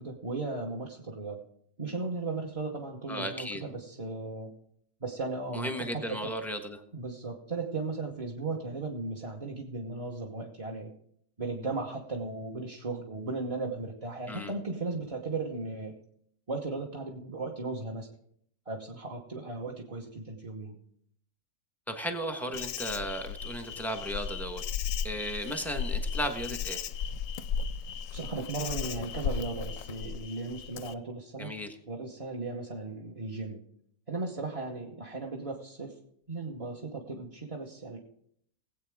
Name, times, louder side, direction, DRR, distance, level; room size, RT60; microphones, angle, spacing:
voice 1, 0.0-1.5 1.8-4.5 5.0-6.3 6.9-11.0 11.4-16.0 16.5-18.1 18.7-20.8 28.1-31.5 31.9-33.6 34.1-36.0 36.3-38.0, right 3 dB, 25° right, -2 dB, 1.1 m, -36 dB
voice 2, 3.1-3.6 5.5-6.8 14.3-14.5 21.9-24.6 25.0-26.8 31.4-31.8, equal, ahead, 5 dB, 1.1 m, -35 dB
Insect, 22.5-30.9, left 7 dB, 70° left, 0.9 m, -35 dB
19.5 x 8.3 x 3.6 m, 0.68 s
omnidirectional pair, 1.7 m